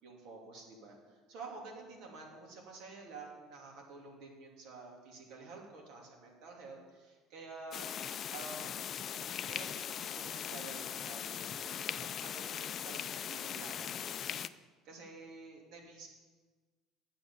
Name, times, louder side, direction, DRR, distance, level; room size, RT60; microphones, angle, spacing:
voice 1, 0.0-7.9 8.3-9.1 9.5-14.3 14.5-16.1, right 3 dB, 65° right, 0 dB, 2.9 m, -50 dB
sound 1, 7.7-14.5, left 9 dB, 45° left, 0.4 m, -40 dB
9.2 x 7.4 x 7.2 m, 1.4 s
supercardioid pair, 110°, 0 cm